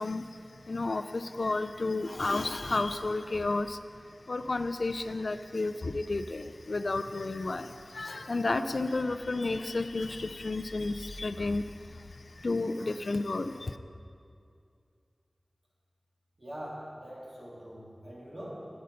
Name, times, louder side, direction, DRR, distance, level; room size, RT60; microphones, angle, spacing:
voice 1, 0.0-3.8 4.3-13.8, left 3 dB, 75° left, 10 dB, 0.4 m, -32 dB
voice 2, 16.4-18.5, equal, 55° right, -5 dB, 2.4 m, -43 dB
9.8 x 6.7 x 5.2 m, 2.4 s
wide cardioid pair, 55°, 0 cm